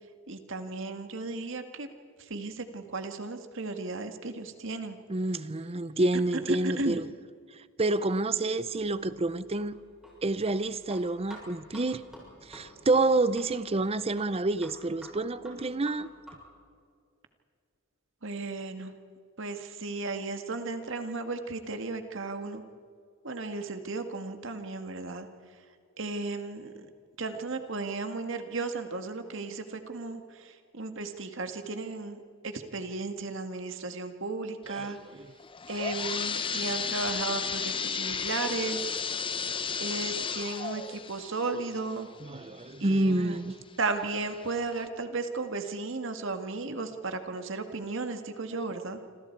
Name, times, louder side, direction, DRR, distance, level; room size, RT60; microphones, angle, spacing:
voice 1, 0.3-1.9 2.3-5.0 6.5-7.0 18.2-18.9 19.4-22.6 23.2-25.3 26.0-26.9 27.2-35.0 35.7-38.8 39.8-42.1 42.8-43.4 43.8-49.0, right 3 dB, 65° right, 1.9 m, -35 dB
voice 2, 5.1-7.0 7.8-9.8 10.2-12.0 12.4-16.1 34.7-35.3 42.2-43.5, right 2 dB, 30° right, 0.7 m, -28 dB
sound 1, 8.6-16.6, equal, 5° right, 7.1 m, -52 dB
sound 2, 35.4-43.0 43.5-43.6 44.3-44.4 44.8-44.9, left 6 dB, 25° left, 0.8 m, -34 dB
27.0 x 26.5 x 4.7 m
head